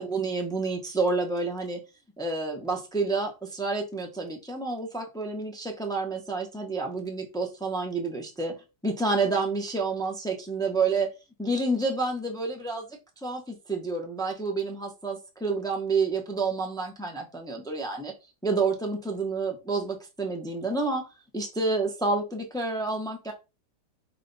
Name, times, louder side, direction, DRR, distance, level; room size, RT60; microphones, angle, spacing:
voice 1, 0.0-1.8 2.2-11.1 11.4-12.9 13.2-18.1 18.4-21.0 21.3-23.3, right 3 dB, 5° left, 2 dB, 0.5 m, -29 dB
5.6 x 2.2 x 3.9 m, 0.27 s
omnidirectional pair, 1.8 m